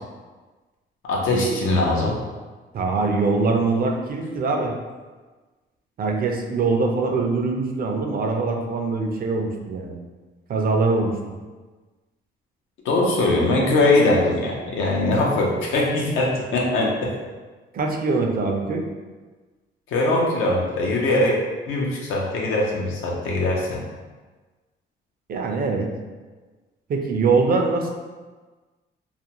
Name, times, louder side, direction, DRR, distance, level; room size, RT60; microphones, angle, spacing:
voice 1, 1.0-2.2 12.8-17.1 19.9-21.4 21.7-23.8, left 2 dB, 85° left, -2 dB, 0.6 m, -21 dB
voice 2, 2.7-4.8 6.0-10.0 10.5-11.2 17.7-18.9 25.3-25.9 26.9-27.9, right 3 dB, 50° right, 3 dB, 0.4 m, -23 dB
2.4 x 2.1 x 2.9 m, 1.3 s
cardioid pair, 90°, 20 cm